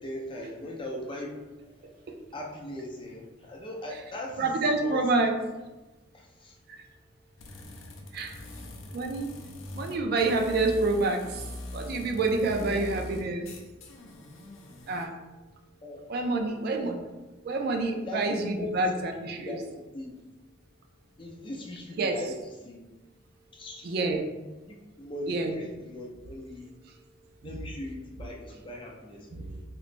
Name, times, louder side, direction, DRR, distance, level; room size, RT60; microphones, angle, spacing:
voice 1, 0.0-2.0 2.3-5.0 6.1-6.6 12.6-12.9 15.8-16.0 16.8-16.9 18.1-18.8 19.4-19.6 19.9-20.2 21.2-22.3 22.6-22.8 23.5-23.9 24.7-26.7 27.4-29.6, left 1 dB, 25° left, -1 dB, 0.5 m, -39 dB
voice 2, 4.4-5.3 6.7-6.8 8.1-8.4 8.9-9.3 9.7-13.5 14.9-15.2 16.1-17.0 17.4-19.6 22.0-22.2 23.8-24.3 25.3-25.5 29.3-29.5, right 3 dB, 50° right, 4 dB, 0.3 m, -28 dB
sound 1, 7.4-15.1, left 1 dB, 90° left, 0.5 m, -42 dB
3.2 x 3.0 x 2.5 m, 1.1 s
head